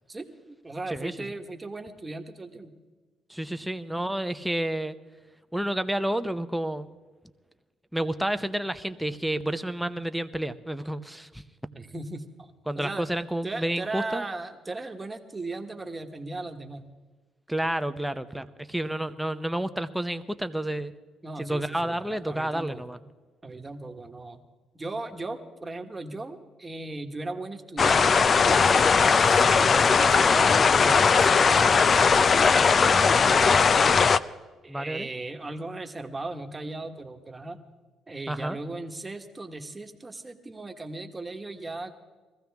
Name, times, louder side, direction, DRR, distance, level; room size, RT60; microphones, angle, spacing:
voice 1, 0.1-2.7 11.7-13.0 13.4-16.9 21.2-22.8 23.4-24.4 24.8-34.1 34.6-37.6 38.1-41.9, right 2 dB, 20° right, 5 dB, 1.4 m, -38 dB
voice 2, 0.9-1.3 3.3-5.0 5.5-7.0 7.9-11.4 12.7-14.2 17.5-20.9 21.4-23.0 34.7-35.1 38.3-38.6, right 1 dB, 5° right, 10 dB, 0.7 m, -30 dB
sound 1, 27.8-34.2, left 5 dB, 40° left, 0.4 m, -19 dB
21.5 x 15.0 x 3.5 m, 1.3 s
cardioid pair, 90°, 0 cm